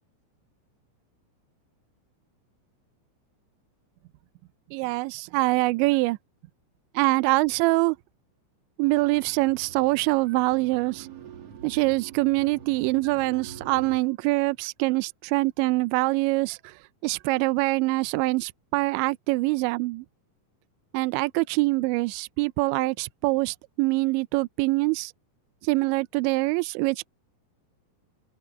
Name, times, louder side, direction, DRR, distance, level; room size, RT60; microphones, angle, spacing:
voice 1, 4.7-6.2 6.9-8.0 8.8-11.1 11.6-16.7 17.0-20.1 20.9-25.1 25.6-27.1, right 23 dB, 85° right, 2.7 m, -24 dB
sound 1, 8.8-14.0, right 8 dB, 50° right, 2.0 m, -44 dB
open air
omnidirectional pair, 5.7 m